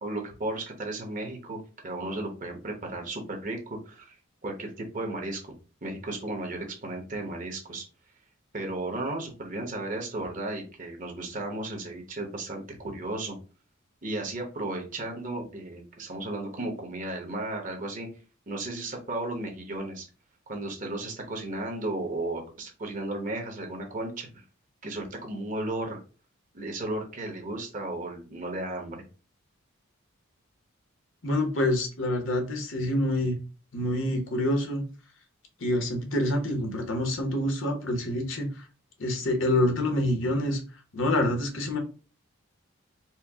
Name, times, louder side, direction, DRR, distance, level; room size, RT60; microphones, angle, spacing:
voice 1, 0.0-4.2 4.4-5.4 5.8-7.8 8.5-13.4 14.0-18.1 18.5-20.1 20.5-24.4 24.8-26.0 26.5-29.0, right 2 dB, 40° right, 2 dB, 1.0 m, -34 dB
voice 2, 31.2-33.4 33.7-34.8 35.6-38.6 39.0-40.6 40.9-41.8, left 1 dB, 65° left, 4 dB, 0.9 m, -27 dB
4.4 x 2.1 x 3.5 m, 0.35 s
head